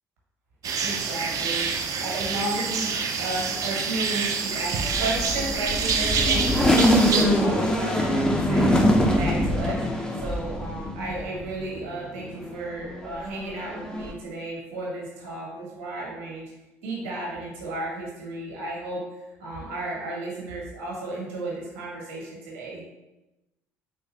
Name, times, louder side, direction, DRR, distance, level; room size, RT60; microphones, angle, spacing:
sound 1, 0.6-7.2, right 5 dB, 55° right, 0.4 m, -27 dB
voice 1, 0.8-1.7 2.0-8.8 9.1-16.5 16.8-19.0 19.4-22.8, right 2 dB, 90° right, -4 dB, 1.2 m, -33 dB
sound 2, 4.8-11.7 12.2-14.1, equal, 10° left, 0.6 m, -24 dB
4.1 x 3.1 x 2.3 m, 1.0 s
hypercardioid pair, 60°, 7 cm